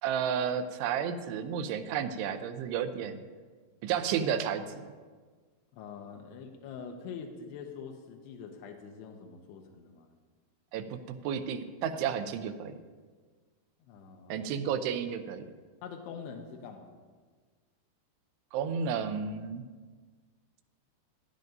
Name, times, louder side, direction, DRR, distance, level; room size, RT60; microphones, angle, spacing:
voice 1, 0.0-3.2 3.8-4.9 10.7-12.8 14.3-15.5 18.5-19.6, right 7 dB, 85° right, 9 dB, 2.7 m, -32 dB
voice 2, 5.7-10.1 13.9-14.5 15.8-16.9, left 6 dB, 85° left, 3 dB, 2.9 m, -44 dB
16.5 x 10.5 x 2.6 m, 1.5 s
omnidirectional pair, 4.8 m